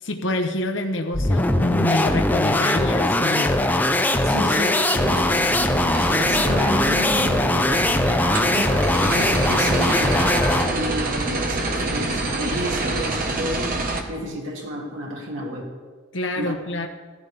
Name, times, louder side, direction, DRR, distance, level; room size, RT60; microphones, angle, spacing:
voice 1, 0.0-3.6 16.1-16.9, left 2 dB, 75° left, 4 dB, 1.0 m, -26 dB
sound 1, 1.1-10.8, left 1 dB, 10° left, 0.6 m, -21 dB
voice 2, 4.2-15.7 16.4-16.6, equal, 80° right, -2 dB, 2.4 m, -31 dB
sound 2, 5.0-14.0, right 2 dB, 45° right, 1.2 m, -27 dB
15.5 x 14.5 x 3.4 m, 1.4 s
head